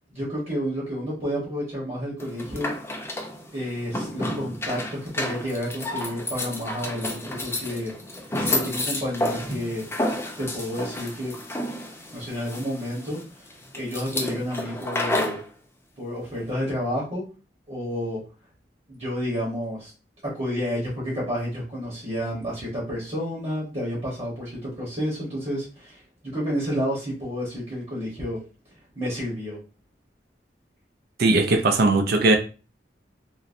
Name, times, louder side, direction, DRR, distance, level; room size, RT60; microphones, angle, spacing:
voice 1, 0.1-2.8 3.5-9.9 10.4-11.3 12.1-13.4 13.7-15.4 16.0-17.2 17.7-18.2 18.9-19.9 20.2-28.4 28.9-29.6, equal, 35° right, 1.1 m, -30 dB
sound 1, 2.2-15.4, left 1 dB, 15° left, 0.5 m, -31 dB
voice 2, 31.2-32.4, right 2 dB, 60° right, 0.4 m, -19 dB
3.8 x 2.0 x 2.5 m
head